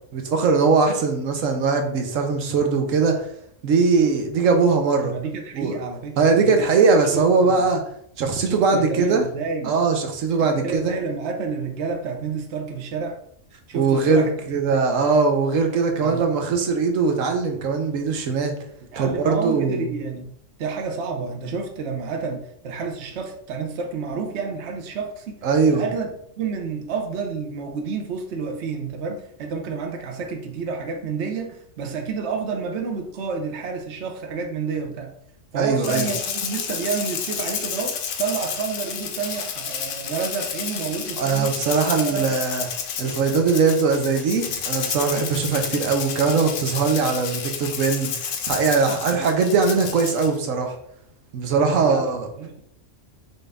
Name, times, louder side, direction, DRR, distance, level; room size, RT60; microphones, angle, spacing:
voice 1, 0.1-3.2 3.6-5.1 5.5-5.8 6.2-7.8 8.2-9.2 9.6-11.0 13.7-18.5 19.0-19.8 25.4-25.8 35.5-36.1 41.2-42.7 43.0-50.8 51.3-52.3, right 4 dB, 90° right, 4 dB, 1.2 m, -20 dB
voice 2, 5.0-6.7 7.1-7.6 8.4-9.7 10.3-13.2 13.7-14.3 14.7-14.8 16.0-16.3 18.9-20.3 20.6-25.4 25.7-26.1 26.4-35.1 35.5-41.5 42.0-42.3 51.5-52.6, right 5 dB, 65° right, 4 dB, 1.0 m, -29 dB
Rattle (instrument), 35.8-50.4, left 7 dB, 75° left, 1.0 m, -31 dB
5.9 x 2.6 x 3.4 m, 0.67 s
omnidirectional pair, 1.3 m